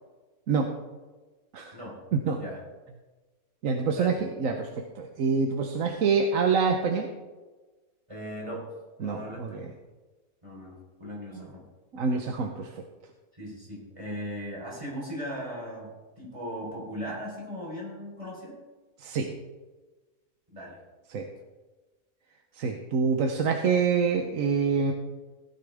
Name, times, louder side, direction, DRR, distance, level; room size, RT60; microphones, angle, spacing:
voice 1, 3.6-7.1 9.0-9.7 11.9-12.7 19.0-19.3 21.1-21.3 22.6-24.9, right 5 dB, 65° right, 4 dB, 1.2 m, -26 dB
voice 2, 8.1-8.7 9.0-9.6 10.4-11.6 13.3-18.6 20.5-20.8, equal, 20° right, -4 dB, 4.1 m, -38 dB
16.0 x 9.7 x 3.5 m, 1.2 s
omnidirectional pair, 1.6 m